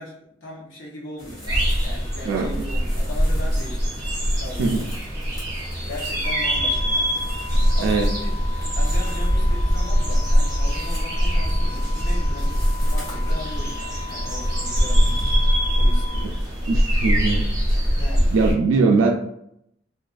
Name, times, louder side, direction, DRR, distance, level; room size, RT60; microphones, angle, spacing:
voice 1, 0.0-4.0 4.3-4.9 5.9-7.2 7.5-8.3 8.7-15.5 15.7-16.4 18.0-18.6, left 1 dB, 75° left, -4 dB, 0.8 m, -38 dB
sound 1, 1.2-15.4, equal, 15° left, 1.2 m, -41 dB
sound 2, 1.5-18.5, equal, 20° right, 0.7 m, -22 dB
sound 3, 6.2-16.2, left 5 dB, 40° left, 0.3 m, -38 dB
voice 2, 7.8-8.1 16.7-17.4 17.7-18.0 18.3-19.1, right 4 dB, 80° right, 2 dB, 0.3 m, -21 dB
2.4 x 2.3 x 2.4 m, 0.74 s
head